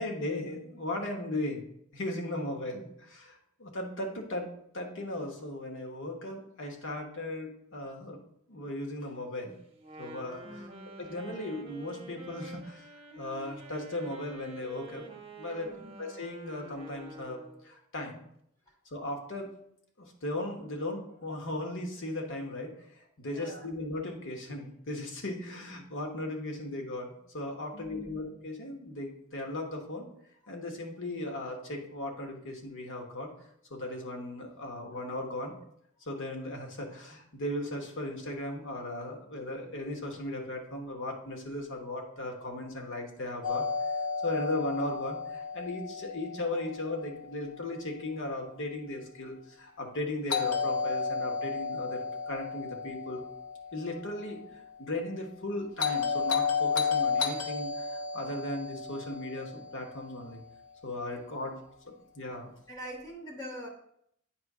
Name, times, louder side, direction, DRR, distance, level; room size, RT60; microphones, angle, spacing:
voice 1, 0.0-1.7 1.9-4.5 4.7-8.2 8.5-9.5 10.0-10.7 11.0-12.8 13.2-15.0 15.4-15.7 16.0-18.2 18.9-19.5 20.0-22.7 23.2-30.1 30.5-33.3 33.7-35.5 36.1-43.6 44.2-53.2 53.7-54.4 54.8-60.4 60.8-61.5 61.8-62.5, left 1 dB, 60° left, 2 dB, 1.3 m, -37 dB
Wind instrument woodwind instrument, 9.8-17.7, right 2 dB, 25° right, 1.0 m, -48 dB
voice 2, 10.4-10.9 15.6-16.0 23.3-23.7 27.7-28.1 61.4-61.5 62.7-63.7, equal, 20° left, -2 dB, 0.9 m, -44 dB
Doorbell, 43.4-47.4 50.3-54.5 55.8-60.2, left 5 dB, 75° left, 1.0 m, -33 dB
8.7 x 3.2 x 4.9 m, 0.72 s
head